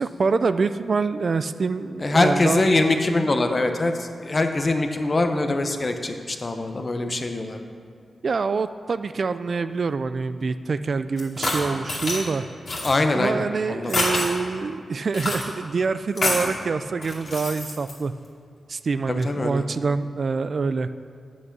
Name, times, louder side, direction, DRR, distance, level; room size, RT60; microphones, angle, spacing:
voice 1, 0.0-2.8 8.2-12.5 13.1-18.1 18.7-20.9, right 4 dB, 60° right, 12 dB, 0.3 m, -25 dB
voice 2, 2.0-7.6 12.8-13.9 19.1-19.6, left 2 dB, 40° left, 6 dB, 0.8 m, -23 dB
sound 1, 11.2-12.2 12.7-12.9 13.9-14.3 15.1-15.4 16.1-16.5 17.0-17.9, left 2 dB, 70° left, 2.3 m, -26 dB
8.0 x 6.3 x 6.0 m, 2.3 s
cardioid pair, 60°, 0 cm